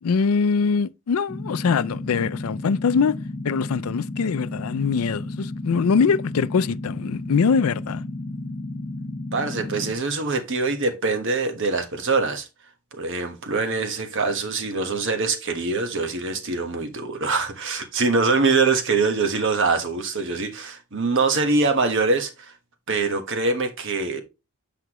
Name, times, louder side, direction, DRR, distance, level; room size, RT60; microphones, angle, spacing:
voice 1, 0.0-3.2 3.4-8.0, left 5 dB, 80° left, 0.4 m, -22 dB
sound 1, 1.3-9.9, left 2 dB, 40° left, 1.1 m, -33 dB
voice 2, 9.3-12.5 12.9-22.5 22.9-24.2, right 3 dB, 60° right, 1.3 m, -24 dB
8.0 x 5.8 x 3.0 m
head